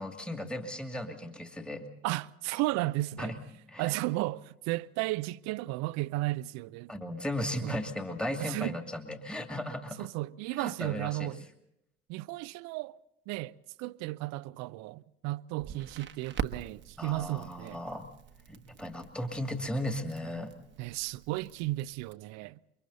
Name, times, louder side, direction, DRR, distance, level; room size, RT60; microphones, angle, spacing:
voice 1, 0.0-1.9 3.2-3.4 3.7-3.9 6.9-10.1 10.6-11.3 17.0-18.1 18.5-20.6, left 1 dB, 5° left, 2.4 m, -36 dB
voice 2, 2.0-3.4 3.8-6.9 7.6-7.8 8.4-8.8 10.0-11.4 12.1-13.0 13.3-17.8 20.8-22.6, right 19 dB, 55° right, 0.7 m, -34 dB
Crackle, 15.6-22.1, right 8 dB, 35° right, 1.3 m, -44 dB
29.5 x 23.5 x 4.1 m
figure-of-eight pair, 60°, 32 cm